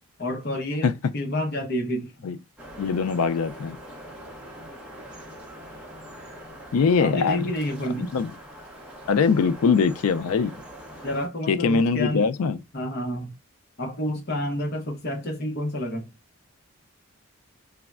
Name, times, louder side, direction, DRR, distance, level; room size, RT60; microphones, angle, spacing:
voice 1, 0.2-2.1 7.0-8.1 11.0-12.3 12.7-13.3 13.8-16.1, left 1 dB, 45° left, 0.7 m, -29 dB
sound 1, 2.6-11.3, equal, 5° right, 0.6 m, -43 dB
voice 2, 2.8-3.8 6.7-7.5 8.1-8.3 9.1-10.5 11.5-12.6, left 5 dB, 80° left, 0.4 m, -22 dB
3.4 x 2.0 x 2.3 m
head